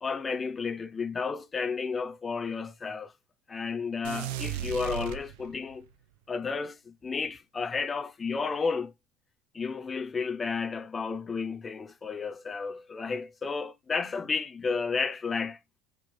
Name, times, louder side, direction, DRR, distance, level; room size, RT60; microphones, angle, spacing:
voice 1, 0.0-3.1 3.5-5.9 6.3-8.9 9.5-15.6, left 5 dB, 20° left, 0.5 m, -32 dB
sound 1, 4.0-5.8, right 10 dB, 85° right, 0.4 m, -36 dB
4.5 x 2.5 x 3.0 m
cardioid pair, 135°, 0 cm